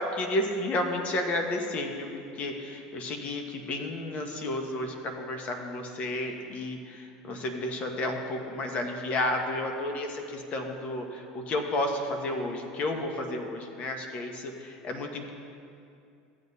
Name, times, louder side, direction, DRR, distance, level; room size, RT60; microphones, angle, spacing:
voice 1, 0.0-2.1 2.4-15.3, left 1 dB, 40° left, 3 dB, 1.2 m, -32 dB
14.5 x 7.6 x 2.8 m, 2.5 s
supercardioid pair, 100°, 3 cm